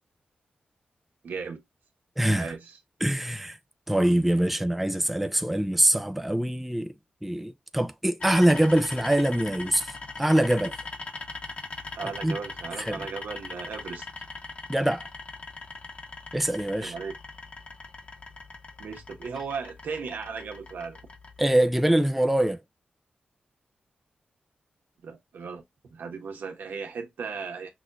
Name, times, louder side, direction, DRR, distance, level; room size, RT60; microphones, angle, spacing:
voice 1, 1.2-1.6 2.4-2.8 12.0-14.1 16.8-17.1 18.8-21.0 25.0-27.7, right 5 dB, 90° right, 1.3 m, -36 dB
voice 2, 2.2-2.5 3.0-3.6 3.9-6.9 7.2-10.7 12.2-12.4 12.8-13.0 14.7-15.1 16.3-16.9 21.4-22.6, right 1 dB, 5° right, 0.4 m, -24 dB
sound 1, 8.2-21.4, left 3 dB, 40° left, 1.1 m, -41 dB
6.1 x 2.4 x 2.5 m
wide cardioid pair, 140°, 3 cm